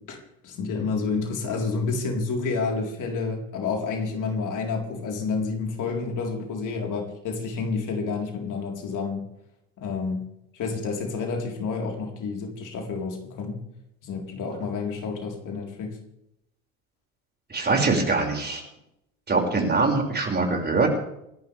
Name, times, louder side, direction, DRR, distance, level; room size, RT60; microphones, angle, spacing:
voice 1, 0.1-9.3 9.8-10.2 10.5-13.6 14.0-16.0, left 4 dB, 50° left, 1 dB, 4.2 m, -29 dB
voice 2, 17.5-18.6 19.3-20.9, right 3 dB, 25° right, 1 dB, 6.0 m, -23 dB
29.0 x 12.0 x 3.5 m, 0.81 s
hypercardioid pair, 70°, 40 cm